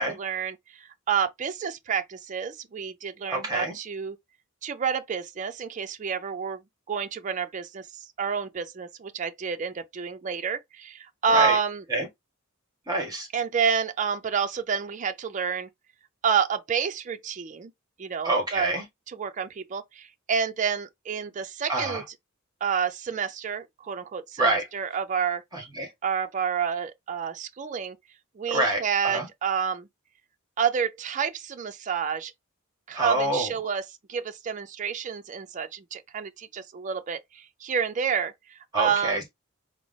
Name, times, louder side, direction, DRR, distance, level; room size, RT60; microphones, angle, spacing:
voice 1, 0.0-4.2 4.6-6.6 6.9-7.9 8.2-11.8 13.3-15.7 16.2-17.7 18.0-18.7 19.1-22.0 22.6-25.4 26.0-28.0 28.4-29.9 30.6-32.3 32.9-39.2, right 6 dB, 35° right, 0.4 m, -29 dB
voice 2, 3.3-3.8 11.3-11.6 11.9-12.1 12.9-13.3 18.2-18.8 21.7-22.0 24.4-24.6 25.5-25.9 28.5-29.3 32.9-33.5 38.7-39.3, right 2 dB, 20° right, 1.7 m, -26 dB
4.7 x 2.0 x 3.8 m
head